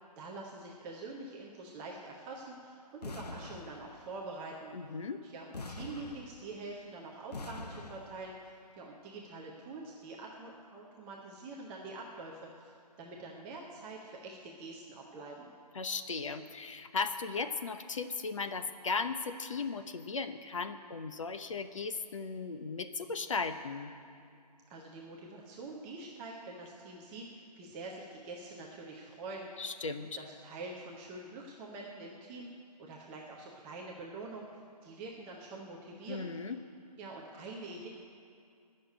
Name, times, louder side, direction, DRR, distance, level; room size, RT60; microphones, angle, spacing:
voice 1, 0.2-4.7 5.2-8.3 8.7-15.5 24.7-29.5 30.0-32.5 32.8-34.5 34.8-36.3 37.0-37.9, right 3 dB, 5° right, -2 dB, 0.4 m, -45 dB
sound 1, 3.0-4.3 5.5-6.8 7.3-8.4, left 2 dB, 75° left, 1.1 m, -45 dB
voice 2, 4.7-5.2 15.7-23.9 29.6-30.2 36.1-36.6, left 4 dB, 50° left, 9 dB, 0.9 m, -36 dB
16.5 x 6.6 x 9.6 m, 2.4 s
figure-of-eight pair, 155°, 21 cm